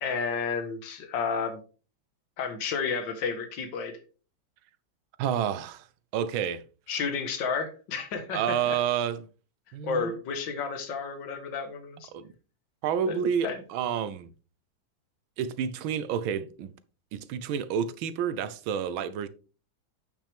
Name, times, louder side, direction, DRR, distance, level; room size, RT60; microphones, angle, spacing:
voice 1, 0.0-1.6 2.4-3.9 6.9-8.8 9.8-12.1 13.1-13.2 13.4-13.6, left 5 dB, 65° left, 2.0 m, -31 dB
voice 2, 5.2-5.9 6.1-6.6 8.3-9.3 9.7-10.2 12.1-12.3 12.8-14.3 15.4-16.7 17.1-19.3, right 8 dB, 85° right, 1.5 m, -29 dB
8.6 x 6.0 x 3.4 m
omnidirectional pair, 2.2 m